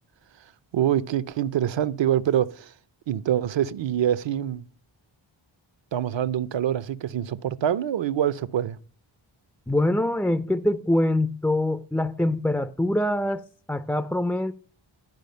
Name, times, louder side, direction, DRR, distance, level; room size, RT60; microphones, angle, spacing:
voice 1, 0.7-2.7 3.1-4.6 5.9-8.8, right 10 dB, 65° right, 0.6 m, -25 dB
voice 2, 9.7-13.4 13.7-14.5, left 1 dB, 5° left, 0.3 m, -24 dB
12.0 x 4.9 x 5.3 m
wide cardioid pair, 115°, 48 cm